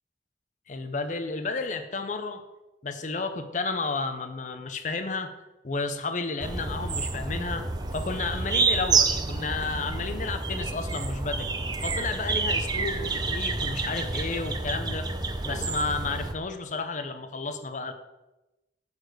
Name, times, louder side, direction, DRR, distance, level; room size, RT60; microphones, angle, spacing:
voice 1, 0.7-2.4 2.8-5.3 5.6-11.5 11.8-15.1 15.4-17.9, left 3 dB, 45° left, 9 dB, 0.6 m, -32 dB
sound 1, 6.4-16.3, right 4 dB, 25° right, 0.6 m, -29 dB
9.5 x 4.1 x 6.6 m, 1.0 s
head